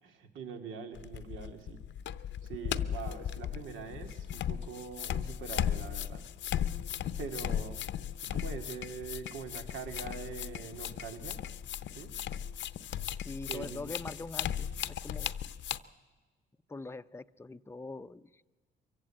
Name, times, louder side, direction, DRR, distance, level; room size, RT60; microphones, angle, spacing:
voice 1, 0.0-1.8 2.4-6.2 7.2-7.8 8.3-11.4 12.0-12.1 13.5-13.8, right 5 dB, 80° right, 6 dB, 2.3 m, -43 dB
sound 1, 1.0-15.8, left 10 dB, 70° left, 0.8 m, -37 dB
voice 2, 13.2-15.4 16.7-18.2, left 3 dB, 15° left, 12 dB, 0.6 m, -43 dB
23.5 x 15.5 x 8.8 m, 1.3 s
cardioid pair, 90°, 20 cm